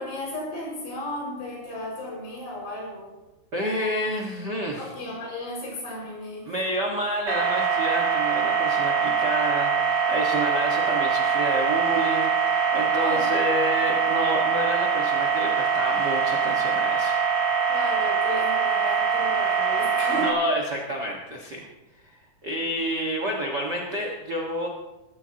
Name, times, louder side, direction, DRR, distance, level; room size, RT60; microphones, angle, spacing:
voice 1, 0.0-3.1 4.8-6.5 12.9-13.3 17.7-20.3, left 1 dB, 75° left, -3 dB, 7.7 m, -34 dB
voice 2, 3.5-4.9 6.4-17.6 20.1-21.7 22.4-24.7, equal, 90° right, -1 dB, 0.9 m, -29 dB
sound 1, 7.3-20.3, right 6 dB, 40° right, 3.0 m, -23 dB
22.5 x 14.5 x 2.9 m, 1.0 s
omnidirectional pair, 4.9 m